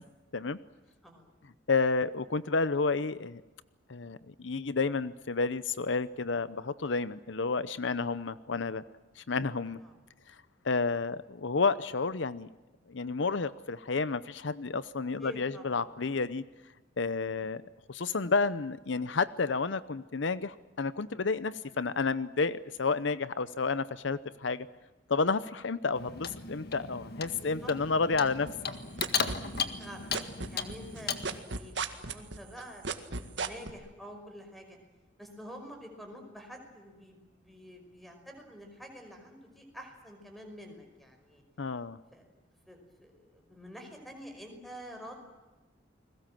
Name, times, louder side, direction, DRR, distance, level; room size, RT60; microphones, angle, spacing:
voice 1, 1.7-3.4 3.9-8.8 9.2-9.8 10.3-10.4 10.6-12.5 12.9-16.4 17.0-17.6 17.9-24.7 25.1-28.5 41.6-42.0, left 4 dB, 70° left, 15 dB, 0.8 m, -30 dB
voice 2, 15.2-15.8 17.3-17.5 27.3-27.7 29.3-30.1 30.5-32.9 33.1-34.8 35.2-41.4 42.1-42.3 42.7-45.2, equal, ahead, 5 dB, 5.4 m, -48 dB
Clock, 25.9-31.4, left 6 dB, 55° left, 1.9 m, -36 dB
sound 1, 28.5-29.9 30.1-33.7, right 4 dB, 65° right, 1.9 m, -34 dB
30.0 x 21.5 x 7.6 m, 1.2 s
head